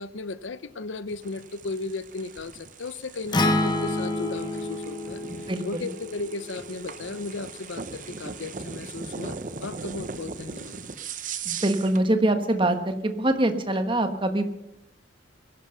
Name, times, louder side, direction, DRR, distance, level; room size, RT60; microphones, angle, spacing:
voice 1, 0.0-10.8, left 3 dB, 75° left, 15 dB, 0.7 m, -36 dB
sound 1, 1.1-12.1, right 5 dB, 40° right, 0.8 m, -39 dB
Acoustic guitar, 3.3-7.6, left 1 dB, 20° left, 1.0 m, -29 dB
voice 2, 5.3-5.9 11.4-14.5, right 1 dB, 25° right, 7 dB, 1.3 m, -24 dB
21.5 x 11.5 x 5.6 m, 0.89 s
head